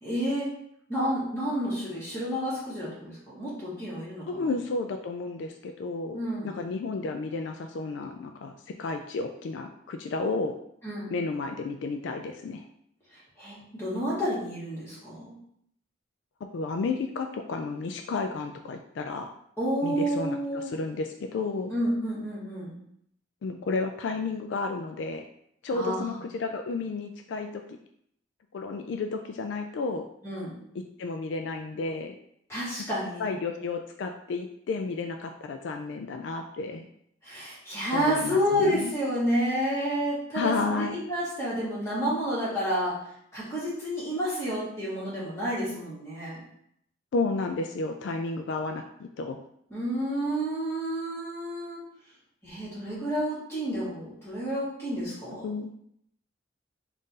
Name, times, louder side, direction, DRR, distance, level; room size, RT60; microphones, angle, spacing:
voice 1, 0.0-0.5 0.9-4.5 6.1-6.5 10.8-11.1 13.4-15.3 19.6-20.7 21.7-22.8 25.7-26.2 30.2-30.5 32.5-33.3 37.2-43.0 43.3-46.4 49.7-51.8 52.4-55.4, equal, 15° left, -9 dB, 1.6 m, -30 dB
voice 2, 4.3-10.5 11.1-12.6 16.5-19.3 19.8-21.7 23.4-25.2 25.6-27.6 28.5-30.1 31.0-32.1 33.2-36.9 37.9-38.9 40.3-41.0 47.1-49.4 55.4-55.7, left 3 dB, 70° left, 5 dB, 0.3 m, -32 dB
3.7 x 2.5 x 4.0 m, 0.71 s
head